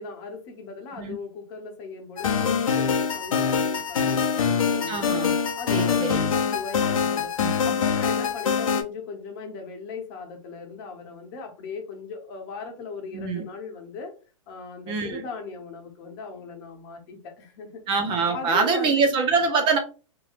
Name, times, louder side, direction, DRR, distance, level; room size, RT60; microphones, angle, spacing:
voice 1, 0.0-5.1 5.5-7.3 7.6-14.1 14.5-17.8 18.3-19.1, left 4 dB, 45° left, 4 dB, 0.9 m, -38 dB
sound 1, 2.2-8.8, left 6 dB, 75° left, 0.7 m, -24 dB
voice 2, 4.9-5.3 5.7-6.3 7.4-7.7 13.1-13.4 14.9-15.2 17.9-19.8, right 4 dB, 30° right, 5 dB, 0.6 m, -24 dB
3.1 x 2.8 x 2.4 m, 0.35 s
hypercardioid pair, 120°, 17 cm